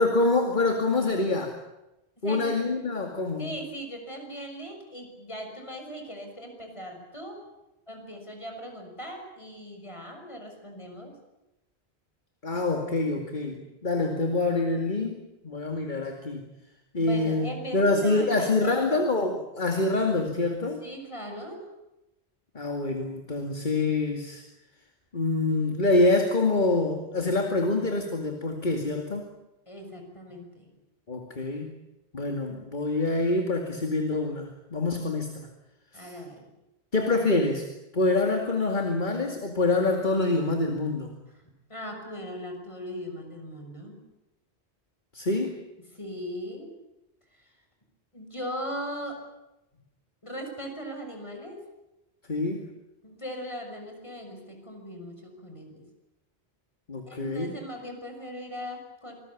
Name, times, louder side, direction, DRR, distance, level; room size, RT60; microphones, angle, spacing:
voice 1, 0.0-1.6 2.2-3.5 12.4-16.4 16.9-17.5 17.7-20.8 22.5-24.4 25.1-29.3 31.1-31.7 32.1-35.5 35.9-36.1 36.9-37.7 37.9-41.1 45.1-45.6 52.3-52.6 56.9-57.5, left 2 dB, 50° left, 3 dB, 2.5 m, -26 dB
voice 2, 2.2-2.5 2.8-2.9 3.4-7.4 7.9-11.1 17.0-19.1 20.8-21.7 29.7-30.7 35.9-36.5 41.7-44.0 45.9-46.7 47.3-47.5 48.1-49.2 50.2-51.6 53.0-55.8 57.1-59.1, equal, 30° left, 3 dB, 6.1 m, -39 dB
27.0 x 20.0 x 8.6 m, 0.94 s
omnidirectional pair, 1.1 m